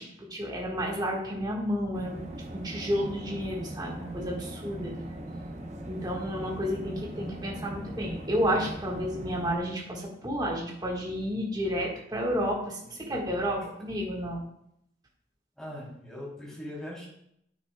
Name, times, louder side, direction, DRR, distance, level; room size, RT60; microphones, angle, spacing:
voice 1, 0.0-2.2 2.5-4.9 5.9-14.4, equal, 20° right, -2 dB, 1.4 m, -31 dB
sound 1, 1.9-9.6, right 1 dB, 40° right, 0.8 m, -40 dB
voice 2, 15.6-17.1, left 1 dB, 5° left, -6 dB, 2.9 m, -41 dB
9.3 x 6.6 x 2.2 m, 0.74 s
head